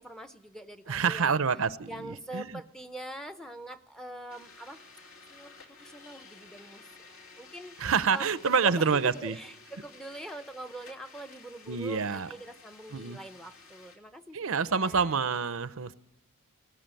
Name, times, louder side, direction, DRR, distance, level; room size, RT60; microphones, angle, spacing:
voice 1, 0.0-1.4 1.9-4.8 5.3-6.8 7.4-15.1, right 1 dB, 5° left, 8 dB, 0.7 m, -44 dB
voice 2, 0.9-2.6 7.8-9.4 11.7-12.3 12.9-13.2 14.3-15.9, right 5 dB, 60° right, 14 dB, 0.7 m, -27 dB
sound 1, 4.3-14.0, left 4 dB, 60° left, 3.1 m, -53 dB
18.5 x 16.5 x 9.1 m, 0.84 s
head